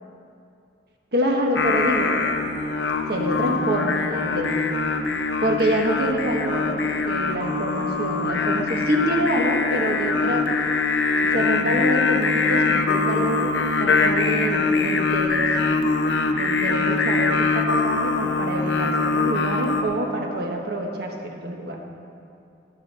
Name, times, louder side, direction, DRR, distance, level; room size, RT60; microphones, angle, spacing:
voice 1, 1.1-2.1 3.1-4.6 5.4-10.5 11.3-15.5 16.4-21.8, right 1 dB, 60° right, 1 dB, 1.4 m, -26 dB
Singing, 1.5-19.8, left 4 dB, 80° left, 0.8 m, -23 dB
17.5 x 7.3 x 4.3 m, 2.5 s
head